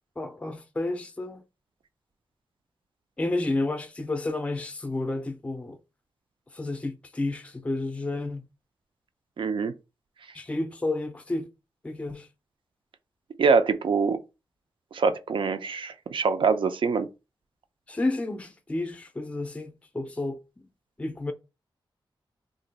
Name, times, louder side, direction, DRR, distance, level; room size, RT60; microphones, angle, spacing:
voice 1, 0.2-1.4 3.2-5.8 6.5-8.4 10.3-11.5 11.8-12.3 17.9-20.4 21.0-21.3, left 2 dB, 15° left, 0.4 m, -31 dB
voice 2, 9.4-9.7 13.4-14.2 14.9-17.1, right 5 dB, 75° right, 0.5 m, -24 dB
2.9 x 2.5 x 4.0 m
wide cardioid pair, 135°, 9 cm